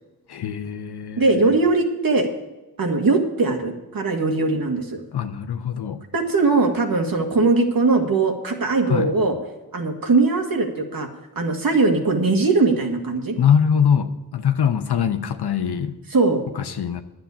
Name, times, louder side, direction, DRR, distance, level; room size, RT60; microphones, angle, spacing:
voice 1, 0.3-1.5 5.1-6.0 8.9-9.1 13.4-15.9 16.5-17.0, left 8 dB, 80° left, 7 dB, 0.9 m, -22 dB
voice 2, 1.2-2.3 2.8-5.0 6.1-9.4 9.7-11.1 11.4-13.4 16.1-16.4, right 3 dB, 60° right, 3 dB, 2.2 m, -20 dB
10.5 x 7.7 x 8.4 m, 1.1 s
cardioid pair, 70°, 39 cm